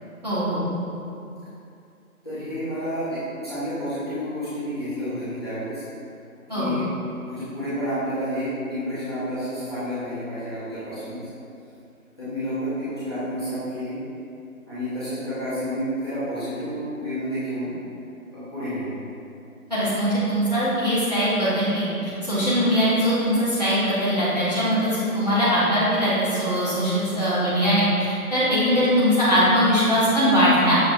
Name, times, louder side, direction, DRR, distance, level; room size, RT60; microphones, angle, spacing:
voice 1, 0.2-0.6 6.5-6.7 19.7-30.8, equal, 30° right, -13 dB, 0.9 m, -21 dB
voice 2, 2.2-5.8 6.5-6.9 7.3-11.2 12.2-14.0 14.7-17.7 18.3-18.9, equal, 15° left, -17 dB, 0.9 m, -30 dB
6.1 x 2.8 x 2.6 m, 2.7 s
figure-of-eight pair, 165°, 44 cm